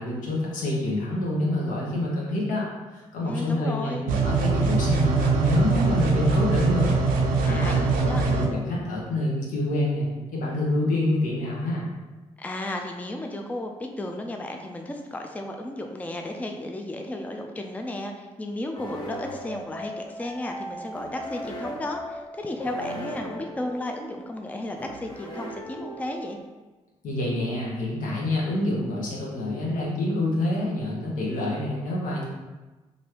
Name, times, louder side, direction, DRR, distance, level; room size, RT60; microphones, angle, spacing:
voice 1, 0.0-7.0 7.4-11.9 27.0-32.2, left 1 dB, 75° left, -4 dB, 0.9 m, -27 dB
voice 2, 3.2-4.1 7.4-8.3 12.4-26.4, left 1 dB, 10° left, 3 dB, 0.4 m, -34 dB
sound 1, 4.1-8.5, right 3 dB, 80° right, 0.4 m, -22 dB
sound 2, 18.8-26.4, equal, 30° left, 0.8 m, -38 dB
3.1 x 2.6 x 2.8 m, 1.2 s
supercardioid pair, 50°, 14 cm